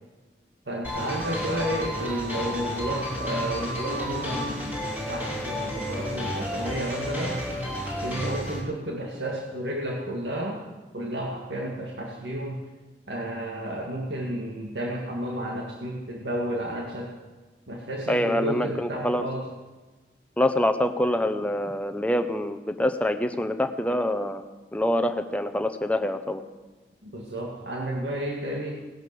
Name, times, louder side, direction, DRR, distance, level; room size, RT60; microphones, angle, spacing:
voice 1, 0.7-7.4 8.0-10.6 10.9-12.6 13.1-17.1 17.7-19.5 27.0-28.8, right 1 dB, 85° right, -1 dB, 2.0 m, -32 dB
sound 1, 0.8-8.6, equal, 10° right, 4.8 m, -31 dB
voice 2, 18.1-19.3 20.4-24.4 24.7-26.4, left 1 dB, 10° left, 8 dB, 0.9 m, -25 dB
18.5 x 11.0 x 7.0 m, 1.2 s
head